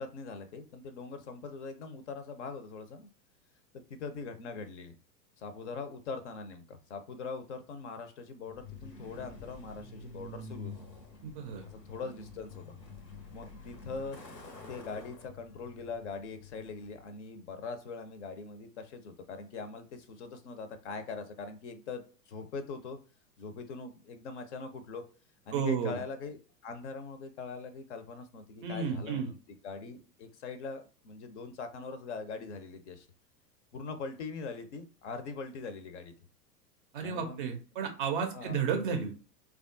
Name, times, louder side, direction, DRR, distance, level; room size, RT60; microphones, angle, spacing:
voice 1, 0.0-3.1 3.7-4.9 5.4-10.7 11.6-12.8 13.3-14.2 14.7-23.0 23.4-25.0 25.5-29.4 29.6-33.1 33.7-36.1 37.0-37.5 38.3-38.6, left 4 dB, 45° left, 8 dB, 0.5 m, -42 dB
Truck, 8.5-17.2, left 3 dB, 85° left, 0.8 m, -48 dB
voice 2, 11.2-11.6 25.5-26.0 28.6-29.3 36.9-39.2, right 6 dB, 35° right, 4 dB, 0.5 m, -32 dB
3.2 x 2.3 x 2.5 m, 0.37 s
figure-of-eight pair, 90°, 49 cm